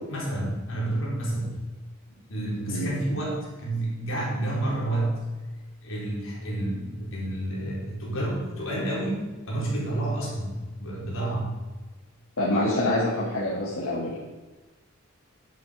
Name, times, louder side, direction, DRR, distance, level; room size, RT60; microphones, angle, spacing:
voice 1, 0.1-1.6 2.1-5.2 5.8-11.6, right 1 dB, 70° left, -5 dB, 4.5 m, -30 dB
voice 2, 12.4-14.3, left 1 dB, 85° left, -8 dB, 2.8 m, -26 dB
11.0 x 8.5 x 5.3 m, 1.2 s
head